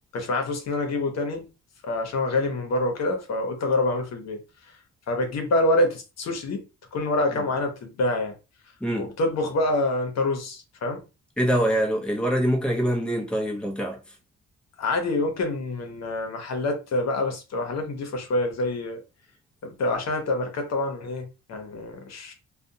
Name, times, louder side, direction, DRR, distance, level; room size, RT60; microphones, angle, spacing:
voice 1, 0.1-1.5 1.8-4.4 5.1-8.3 9.0-11.0 14.8-19.0 19.6-22.3, left 2 dB, 60° left, 0.9 m, -26 dB
voice 2, 8.8-9.1 11.4-14.0, equal, 5° left, 0.8 m, -24 dB
2.5 x 2.2 x 2.7 m
cardioid pair, 90°, 30 cm